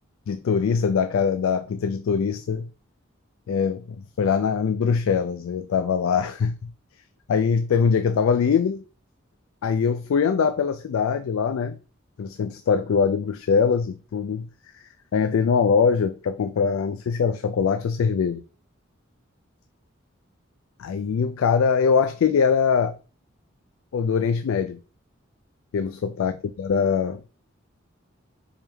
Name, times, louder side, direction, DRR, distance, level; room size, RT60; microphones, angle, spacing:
voice 1, 0.3-2.7 3.5-3.8 4.2-6.7 7.3-8.8 9.6-11.8 12.2-14.5 15.1-18.4 20.8-22.9 23.9-24.8 25.7-27.3, left 6 dB, 90° left, 0.3 m, -22 dB
4.5 x 3.5 x 3.3 m
head